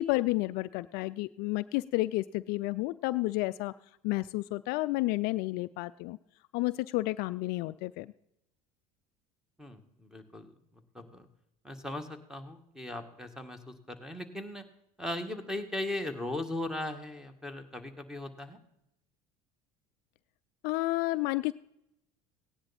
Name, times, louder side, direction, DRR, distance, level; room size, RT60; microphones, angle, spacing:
voice 1, 0.0-3.7 4.0-6.2 6.5-8.1 20.6-21.5, left 19 dB, 60° left, 15 dB, 0.4 m, -31 dB
voice 2, 9.6-10.5 10.9-11.3 11.6-14.6 15.0-18.6, left 1 dB, 5° right, 9 dB, 1.8 m, -38 dB
17.0 x 9.9 x 4.3 m, 0.82 s
hypercardioid pair, 75°, 18 cm